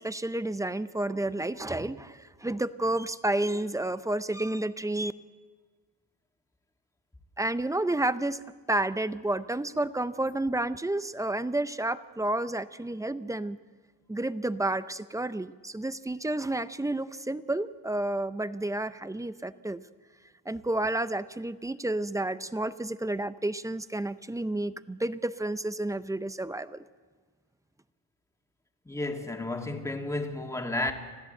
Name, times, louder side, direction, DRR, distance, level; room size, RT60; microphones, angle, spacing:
voice 1, 0.0-5.1 7.4-8.4 8.7-13.6 14.1-19.8 20.5-26.8, right 1 dB, 10° right, 0.5 m, -30 dB
voice 2, 28.9-30.9, left 2 dB, 5° left, 2.1 m, -32 dB
26.0 x 15.5 x 7.8 m
cardioid pair, 115°, 41 cm